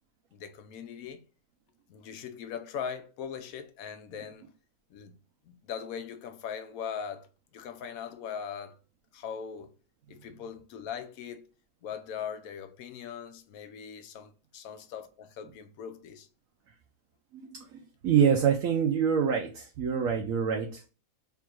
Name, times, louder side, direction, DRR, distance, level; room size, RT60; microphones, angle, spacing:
voice 1, 0.3-1.2 1.9-4.5 4.9-5.1 5.4-8.8 9.1-9.7 10.1-11.5 11.8-16.3, left 7 dB, 75° left, 1.0 m, -40 dB
voice 2, 17.3-20.9, right 7 dB, 70° right, 1.0 m, -26 dB
3.5 x 2.5 x 4.4 m
omnidirectional pair, 1.5 m